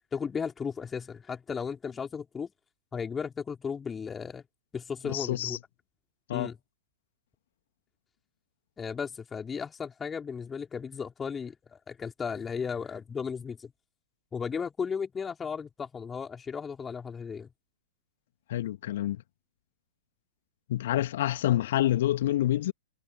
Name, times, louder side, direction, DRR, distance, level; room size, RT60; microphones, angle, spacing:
voice 1, 0.1-2.5 2.9-4.4 4.7-5.6 6.3-6.6 8.8-13.7 14.3-17.5, left 6 dB, 15° left, 3.6 m, -35 dB
voice 2, 5.0-5.6 6.3-6.5 18.5-19.2 20.7-22.7, left 13 dB, 55° left, 1.8 m, -27 dB
figure-of-eight pair, 100°, 0 cm